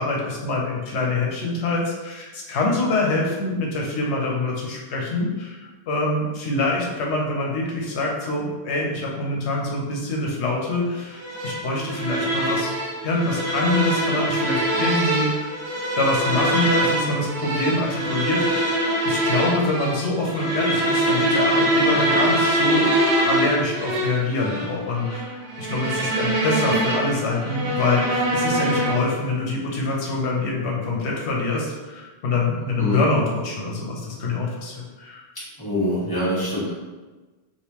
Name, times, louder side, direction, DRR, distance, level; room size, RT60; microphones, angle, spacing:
voice 1, 0.0-12.7 13.0-22.9 23.3-35.2, left 2 dB, 85° left, -2 dB, 1.0 m, -25 dB
sound 1, 11.2-29.2, right 1 dB, 90° right, 1.1 m, -23 dB
voice 2, 32.6-33.0 35.6-36.7, equal, 20° left, -10 dB, 1.2 m, -25 dB
3.4 x 2.5 x 2.9 m, 1.2 s
omnidirectional pair, 1.1 m